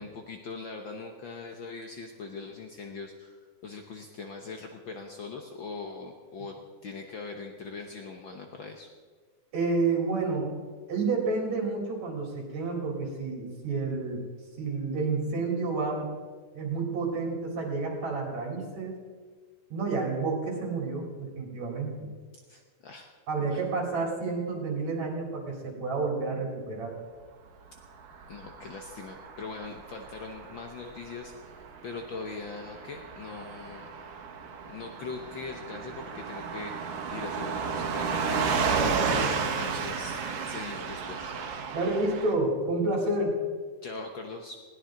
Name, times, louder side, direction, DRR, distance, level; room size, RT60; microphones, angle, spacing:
voice 1, 0.0-6.5 6.8-8.9 22.5-23.1 23.5-23.6 28.3-33.9 34.7-41.3 43.8-44.6, left 4 dB, 75° left, 3 dB, 1.1 m, -41 dB
voice 2, 9.5-10.6 10.9-14.3 14.6-16.1 16.5-19.0 19.7-22.1 23.3-26.9 41.7-43.4, right 3 dB, 60° right, -1 dB, 5.0 m, -30 dB
Car passing by / Truck, 28.0-42.3, right 5 dB, 80° right, 2.9 m, -33 dB
20.5 x 17.5 x 3.9 m, 1.5 s
omnidirectional pair, 3.7 m